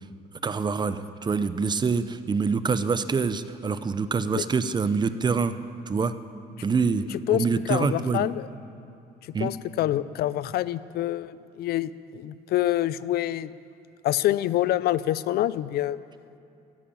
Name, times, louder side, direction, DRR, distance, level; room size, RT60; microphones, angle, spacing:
voice 1, 0.4-5.6 5.9-6.1 6.6-8.3 9.3-9.5, right 5 dB, 25° right, 12 dB, 0.6 m, -25 dB
voice 2, 7.3-8.5 9.4-13.5 14.0-16.0, left 13 dB, 65° left, 17 dB, 0.5 m, -26 dB
14.0 x 11.5 x 8.7 m, 2.6 s
cardioid pair, 110°, 17 cm